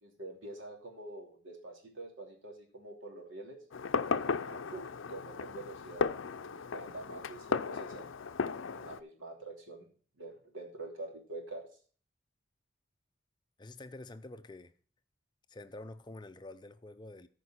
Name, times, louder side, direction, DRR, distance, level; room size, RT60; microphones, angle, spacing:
voice 1, 0.0-3.6 4.1-6.1 6.4-8.1 8.7-9.9 10.2-11.7, right 2 dB, 85° right, 2.9 m, -46 dB
Fireworks, 3.7-9.0, left 5 dB, 85° left, 0.5 m, -35 dB
voice 2, 13.6-14.7 15.5-17.3, left 2 dB, 20° left, 0.4 m, -47 dB
14.5 x 5.2 x 4.3 m
head